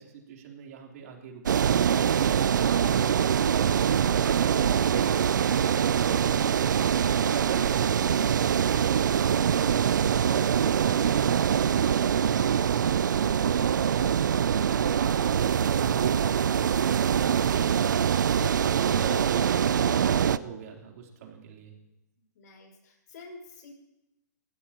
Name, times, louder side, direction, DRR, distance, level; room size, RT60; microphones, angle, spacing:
voice 1, 0.0-1.7 2.0-5.6 5.9-6.4 7.0-9.1 9.6-13.3 13.5-14.1 14.6-18.2 18.6-21.7, right 7 dB, 55° right, 0 dB, 3.6 m, -41 dB
sound 1, 1.5-20.4, right 8 dB, 85° right, 0.5 m, -24 dB
voice 2, 18.4-19.1 22.2-23.7, left 4 dB, 65° left, 1 dB, 6.1 m, -47 dB
21.0 x 16.5 x 3.0 m, 0.92 s
hypercardioid pair, 135°, 10 cm